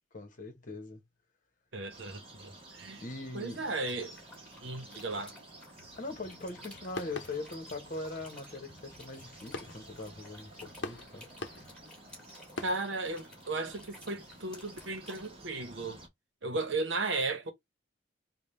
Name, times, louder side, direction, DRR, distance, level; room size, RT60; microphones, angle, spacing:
voice 1, 0.1-1.0 3.0-3.6 6.0-11.3, left 2 dB, 40° left, 1.0 m, -41 dB
voice 2, 1.7-3.0 3.3-4.1 4.6-5.4 12.6-16.0 16.4-17.5, right 3 dB, 70° right, 0.9 m, -35 dB
sound 1, 1.9-16.1, right 2 dB, 30° right, 1.0 m, -53 dB
sound 2, 3.9-15.3, left 2 dB, 5° left, 1.5 m, -55 dB
sound 3, 5.8-12.7, left 3 dB, 65° left, 0.7 m, -46 dB
3.5 x 2.3 x 4.2 m
head